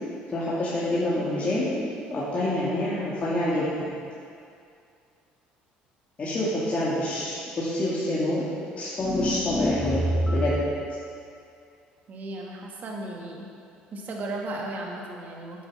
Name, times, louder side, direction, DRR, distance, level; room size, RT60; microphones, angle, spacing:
voice 1, 0.3-1.8 2.1-3.9 6.2-8.4 8.8-10.0 10.3-10.6, left 1 dB, 35° left, -9 dB, 2.4 m, -27 dB
sound 1, 9.0-10.8, equal, 5° left, 0.9 m, -26 dB
voice 2, 12.1-13.5 13.9-15.6, right 2 dB, 50° right, -1 dB, 2.0 m, -35 dB
8.9 x 8.3 x 5.6 m, 2.4 s
supercardioid pair, 80°, 4 cm